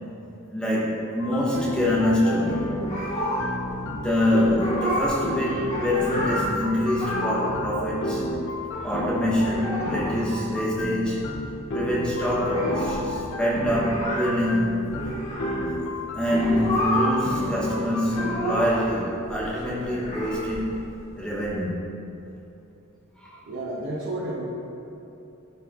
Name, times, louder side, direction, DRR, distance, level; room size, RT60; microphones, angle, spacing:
voice 1, 0.5-2.7 3.4-3.5 3.9-8.2 8.7-11.3 11.7-14.9 16.1-20.9 21.2-21.8 23.2-23.4, left 1 dB, 5° left, -7 dB, 0.8 m, -25 dB
sound 1, 1.2-18.7, left 1 dB, 60° left, 0.5 m, -32 dB
sound 2, 2.8-3.7 4.0-4.1 4.4-5.2 5.5-6.5 6.9-7.6 7.8-7.9 8.1-8.9 9.3-10.1 10.4-10.5 10.7-11.3 11.6-11.7 11.9-15.6 16.2-17.2 17.5-18.9 19.2-21.4, equal, 30° left, 1.3 m, -30 dB
voice 2, 23.5-24.4, right 1 dB, 65° right, -6 dB, 0.8 m, -31 dB
11.5 x 4.4 x 2.4 m, 2.8 s
head